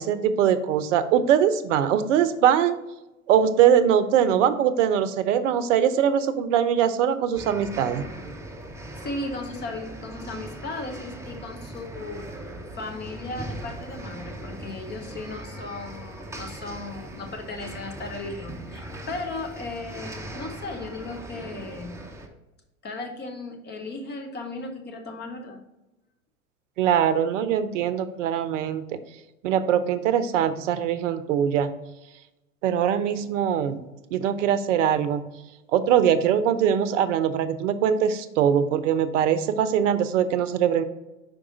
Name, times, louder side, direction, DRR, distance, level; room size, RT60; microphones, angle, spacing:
voice 1, 0.0-2.8 3.3-8.0 26.8-28.8 29.4-31.7 32.6-33.8 34.1-35.2 35.7-40.8, right 9 dB, 60° right, 12 dB, 0.7 m, -22 dB
sound 1, 7.3-22.3, right 1 dB, 5° right, 0.8 m, -39 dB
voice 2, 8.9-12.5 12.7-22.0 22.8-25.6, left 2 dB, 25° left, 4 dB, 1.1 m, -36 dB
5.2 x 4.8 x 3.9 m, 0.99 s
figure-of-eight pair, 90°, 42 cm